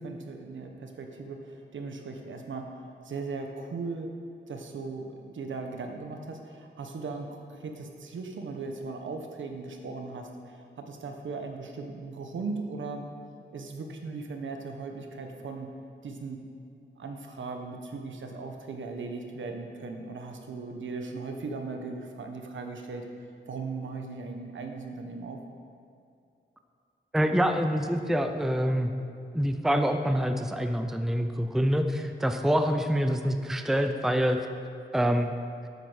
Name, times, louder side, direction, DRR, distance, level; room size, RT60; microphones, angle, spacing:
voice 1, 0.0-2.7 3.0-4.1 4.5-13.1 13.5-15.7 16.0-16.4 17.0-23.1 23.5-25.4, right 4 dB, 75° right, 4 dB, 1.4 m, -38 dB
voice 2, 27.1-28.9 29.3-34.4 34.9-35.3, equal, ahead, 6 dB, 0.6 m, -26 dB
12.0 x 8.7 x 6.4 m, 2.5 s
wide cardioid pair, 150°, 20 cm